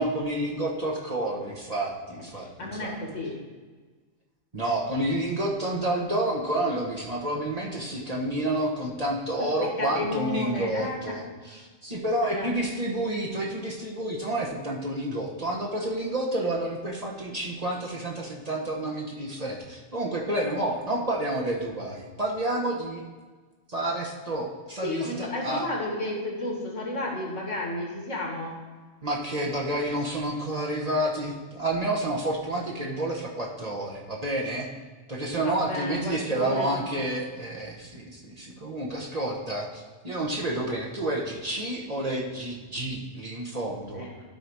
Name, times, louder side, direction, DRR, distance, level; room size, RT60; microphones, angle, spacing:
voice 1, 0.0-2.9 4.5-11.2 11.5-23.0 23.7-25.6 29.0-34.7 35.1-44.1, right 1 dB, 35° right, -2 dB, 1.0 m, -29 dB
voice 2, 2.4-3.4 9.4-11.2 12.2-12.5 24.8-28.6 35.4-36.8 43.9-44.1, left 2 dB, 75° left, -1 dB, 2.0 m, -32 dB
12.0 x 4.0 x 4.7 m, 1.4 s
omnidirectional pair, 1.3 m